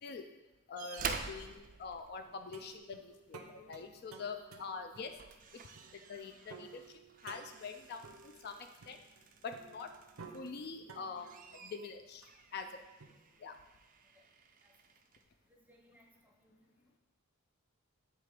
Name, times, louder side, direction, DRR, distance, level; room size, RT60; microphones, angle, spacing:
voice 1, 0.7-5.1 5.5-9.0 9.4-9.9 10.3-12.7 13.4-13.5, left 5 dB, 45° left, 6 dB, 0.4 m, -45 dB
sound 1, 0.8-2.8 4.3-4.5 4.9-10.7 11.1-15.3 16.2-16.3, right 5 dB, 40° right, 0.4 m, -48 dB
sound 2, 2.2-13.7, right 5 dB, 85° right, 0.6 m, -56 dB
voice 2, 15.5-16.9, left 1 dB, 10° right, 1 dB, 0.7 m, -66 dB
7.4 x 3.3 x 4.8 m, 1.1 s
head